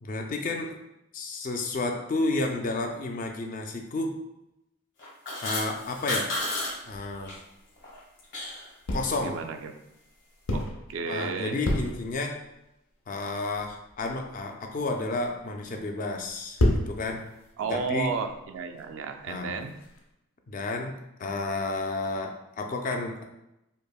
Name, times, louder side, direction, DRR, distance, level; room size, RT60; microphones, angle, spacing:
voice 1, 0.0-0.7 1.1-4.1 5.4-6.4 6.9-7.4 8.9-9.4 11.0-12.4 13.1-17.2 17.6-18.1 19.3-19.6 20.5-20.9 21.2-23.2, left 2 dB, 40° left, 3 dB, 0.3 m, -31 dB
sound 1, 5.0-6.7 7.0-7.3 7.8-8.7, left 1 dB, 55° left, 1.4 m, -32 dB
sound 2, 6.4-8.5 8.9-9.5 10.1-11.2 11.4-12.5 13.1-13.2 13.5-20.0, left 1 dB, 80° left, 0.6 m, -32 dB
voice 2, 9.2-9.7 10.5-11.6 17.6-19.7, right 5 dB, 65° right, 6 dB, 0.3 m, -33 dB
5.2 x 2.1 x 2.3 m, 0.88 s
head